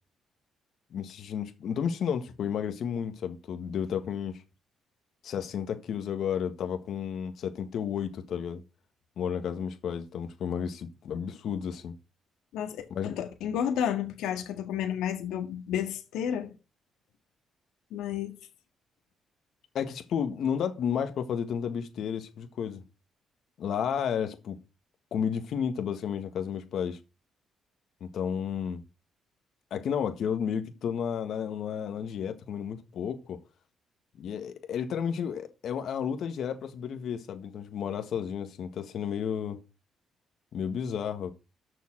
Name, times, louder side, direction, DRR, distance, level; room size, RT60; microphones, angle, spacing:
voice 1, 0.9-4.4 5.2-8.6 9.2-12.0 12.9-13.2 19.7-22.8 23.6-24.5 25.1-27.0 28.0-28.8 29.7-33.4 34.2-39.6 40.5-41.3, left 8 dB, 70° left, 1.7 m, -32 dB
voice 2, 12.5-16.5 17.9-18.4, left 9 dB, 90° left, 1.9 m, -31 dB
7.2 x 6.6 x 6.2 m
cardioid pair, 90°, 0 cm